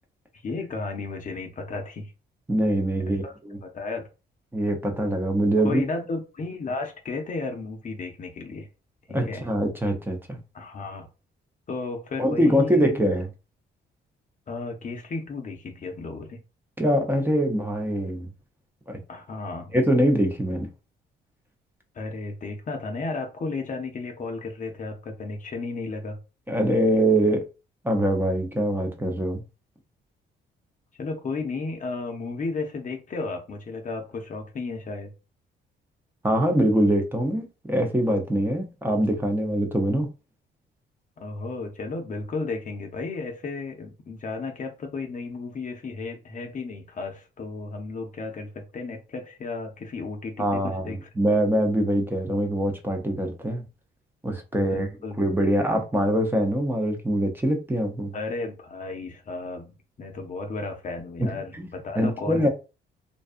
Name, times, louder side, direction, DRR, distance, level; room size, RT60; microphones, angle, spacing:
voice 1, 0.4-2.1 3.0-3.3 3.6-4.1 5.6-8.7 9.1-9.5 10.5-11.1 11.7-13.0 14.5-16.4 19.1-19.8 21.9-26.2 31.0-35.1 41.2-51.1 54.5-55.2 58.1-62.5, left 3 dB, 40° left, 0.6 m, -34 dB
voice 2, 2.5-3.6 4.5-5.8 9.1-10.4 12.2-13.3 16.8-18.3 18.9-19.0 19.7-20.7 26.5-27.4 27.8-29.4 36.2-40.1 50.4-53.6 54.2-54.9 55.2-58.1 61.2-61.3 61.5-61.6 62.0-62.5, right 1 dB, 10° right, 0.6 m, -23 dB
2.6 x 2.3 x 2.4 m
cardioid pair, 90°, 20 cm